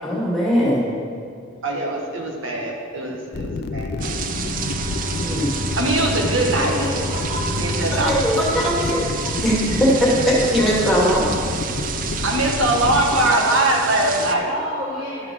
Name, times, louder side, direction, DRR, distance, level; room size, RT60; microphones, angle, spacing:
voice 1, 0.0-0.9 5.1-5.7 7.9-11.4 12.1-12.2 14.3-14.4, equal, ahead, -6 dB, 2.3 m, -20 dB
voice 2, 1.6-4.2 5.7-6.8 7.6-8.2 12.2-14.5, right 1 dB, 75° right, 0 dB, 1.4 m, -21 dB
sound 1, 3.3-13.3, left 3 dB, 50° left, 0.4 m, -29 dB
sound 2, 4.0-14.3, right 6 dB, 40° right, 0.5 m, -30 dB
Bowed string instrument, 4.4-9.7, left 1 dB, 25° left, 1.6 m, -31 dB
voice 3, 6.6-7.7 14.4-15.3, equal, 25° right, -5 dB, 1.2 m, -30 dB
12.0 x 5.9 x 6.3 m, 2.4 s
head